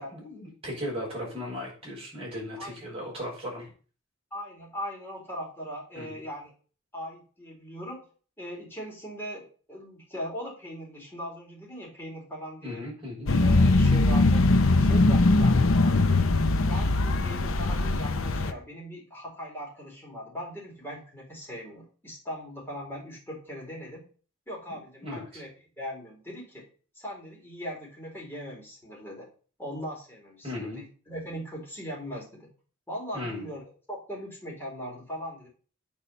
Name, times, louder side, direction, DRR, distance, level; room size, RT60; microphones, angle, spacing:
voice 1, 0.0-3.7 5.9-6.2 12.6-13.3 25.0-25.2 30.4-30.8 33.1-33.5, left 1 dB, 30° right, -2 dB, 6.2 m, -36 dB
voice 2, 4.3-6.5 6.9-8.0 8.4-12.8 13.3-14.4 14.8-16.1 16.7-24.0 24.5-25.5 25.8-26.6 26.9-29.3 29.6-32.5 32.9-35.5, equal, 10° left, -3 dB, 4.0 m, -39 dB
sound 1, 13.3-18.5, left 2 dB, 80° left, 0.8 m, -21 dB
8.8 x 5.0 x 7.0 m, 0.40 s
head